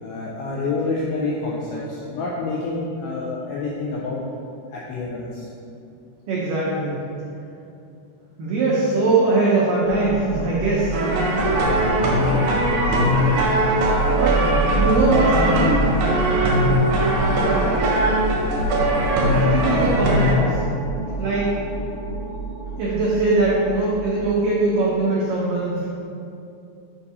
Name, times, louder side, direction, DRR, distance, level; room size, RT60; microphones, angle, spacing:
voice 1, 0.0-4.2 4.7-5.5 11.4-12.5 16.8-17.9 18.4-18.5, left 3 dB, 85° left, -5 dB, 2.1 m, -29 dB
voice 2, 6.3-7.0 8.4-11.0 14.2-14.4 14.7-15.8 19.3-20.6 21.2-21.5 22.8-25.9, right 2 dB, 85° right, -6 dB, 1.9 m, -21 dB
sound 1, 9.8-24.5, right 1 dB, 70° left, 3.0 m, -28 dB
sound 2, 10.9-20.3, right 1 dB, 70° right, 2.2 m, -20 dB
7.6 x 2.7 x 5.3 m, 2.6 s
omnidirectional pair, 4.9 m